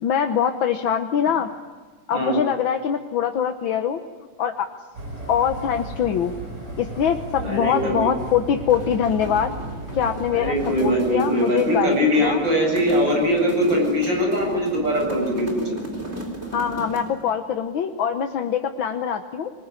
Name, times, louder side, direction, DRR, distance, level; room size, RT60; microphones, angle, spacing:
voice 1, 0.0-1.5 2.1-4.0 4.4-4.7 5.3-6.3 6.8-9.5 9.9-10.6 10.8-12.4 16.5-19.5, left 8 dB, 70° left, 6 dB, 1.8 m, -23 dB
sound 1, 4.9-10.9, right 1 dB, 85° right, 7.2 m, -35 dB
voice 2, 7.4-8.1 10.3-15.8, equal, 60° right, 0 dB, 8.7 m, -22 dB
sound 2, 8.5-17.2, right 1 dB, 30° right, 4.3 m, -35 dB
26.0 x 21.0 x 9.9 m, 1.5 s
omnidirectional pair, 2.3 m